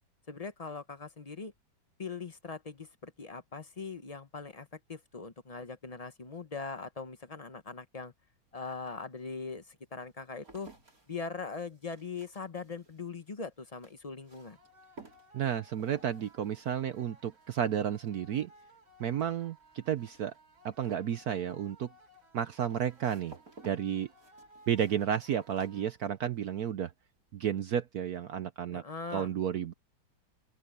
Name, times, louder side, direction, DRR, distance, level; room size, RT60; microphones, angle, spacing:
voice 1, 0.3-1.5 2.0-8.1 8.5-10.7 11.1-14.6 28.7-29.3, left 4 dB, 40° left, 0.5 m, -41 dB
sound 1, 8.5-8.6 9.3-26.5 26.7-27.3, right 3 dB, 45° right, 5.2 m, -58 dB
sound 2, 14.3-26.3, equal, 80° right, 4.2 m, -60 dB
voice 2, 15.3-18.5 19.0-20.3 20.6-21.9 22.3-23.3 23.6-24.1 24.7-26.9 27.3-28.8 29.1-29.7, right 9 dB, 65° right, 1.0 m, -32 dB
open air
omnidirectional pair, 2.2 m